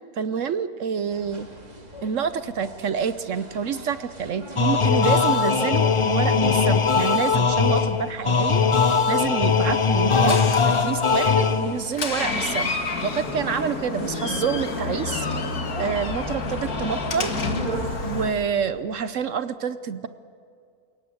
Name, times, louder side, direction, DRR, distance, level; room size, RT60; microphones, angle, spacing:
voice 1, 0.2-1.5 2.0-8.6 9.1-12.7 13.0-15.3 15.8-17.3 18.0-20.1, right 7 dB, 60° right, 13 dB, 1.0 m, -27 dB
sound 1, 1.1-18.5, right 1 dB, 25° right, 2.7 m, -39 dB
sound 2, 4.6-11.9, left 5 dB, 40° left, 0.4 m, -20 dB
Door, 9.6-18.3, left 3 dB, 75° left, 2.2 m, -30 dB
28.5 x 18.5 x 7.8 m, 2.4 s
omnidirectional pair, 1.6 m